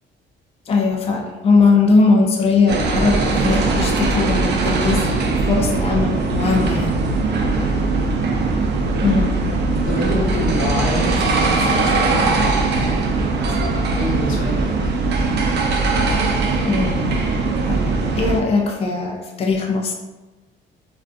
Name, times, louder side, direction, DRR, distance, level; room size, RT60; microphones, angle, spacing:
voice 1, 0.7-7.0 9.0-9.3 16.6-17.2 17.7-19.9, left 4 dB, 30° left, 1 dB, 0.4 m, -19 dB
sound 1, 2.7-18.4, right 3 dB, 60° right, 0.5 m, -20 dB
voice 2, 7.1-7.8 9.8-13.3 13.6-14.9 15.5-15.6, left 1 dB, 85° left, -3 dB, 0.8 m, -27 dB
2.4 x 2.3 x 2.5 m, 1.2 s
cardioid pair, 90°, 20 cm